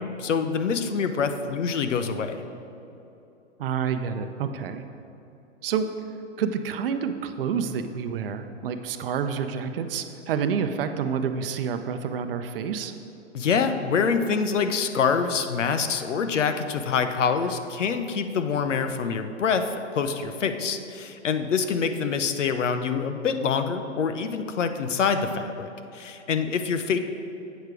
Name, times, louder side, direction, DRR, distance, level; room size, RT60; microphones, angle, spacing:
voice 1, 0.0-2.4 13.3-27.0, left 6 dB, 85° left, 8 dB, 0.8 m, -26 dB
voice 2, 3.6-4.8 5.6-5.9 6.4-12.9, right 7 dB, 50° right, 8 dB, 0.6 m, -28 dB
8.1 x 6.6 x 4.8 m, 2.9 s
hypercardioid pair, 130°, 36 cm